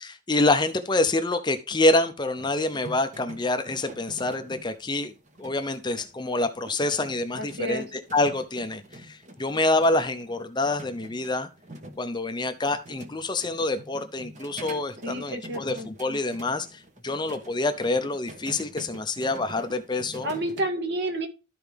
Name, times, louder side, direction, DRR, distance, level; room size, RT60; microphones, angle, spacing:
voice 1, 0.0-5.1 5.4-11.5 12.0-20.3, left 2 dB, 20° left, 9 dB, 0.7 m, -26 dB
sound 1, 2.4-20.6, right 1 dB, 35° right, 1.3 m, -46 dB
voice 2, 7.4-7.9 15.0-15.9 20.2-21.3, right 1 dB, 55° right, 5 dB, 1.9 m, -30 dB
13.0 x 4.7 x 3.5 m, 0.30 s
head